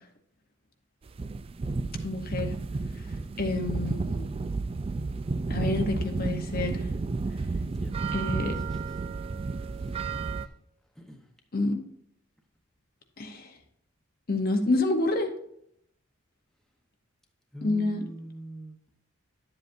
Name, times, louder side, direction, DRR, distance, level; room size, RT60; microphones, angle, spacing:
sound 1, 1.1-10.5, right 3 dB, 25° right, 0.3 m, -31 dB
voice 1, 2.0-2.5 3.4-4.3 5.5-6.8 8.1-8.6 11.5-11.8 13.2-13.5 14.3-15.3 17.6-18.0, left 2 dB, 45° left, 5 dB, 0.8 m, -28 dB
voice 2, 7.7-9.0 9.7-10.5 10.9-11.3 17.5-18.8, right 1 dB, ahead, 1 dB, 0.9 m, -45 dB
11.0 x 7.8 x 2.6 m, 0.72 s
head